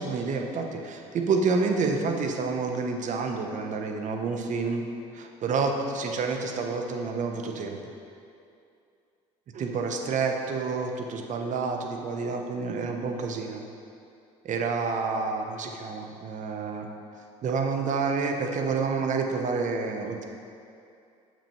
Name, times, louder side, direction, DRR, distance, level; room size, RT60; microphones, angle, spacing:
voice 1, 0.0-4.8 5.1-7.8 9.5-13.6 14.4-16.9 17.4-20.2, right 4 dB, 50° right, 3 dB, 0.9 m, -29 dB
6.9 x 6.1 x 4.4 m, 2.6 s
hypercardioid pair, 70°, 17 cm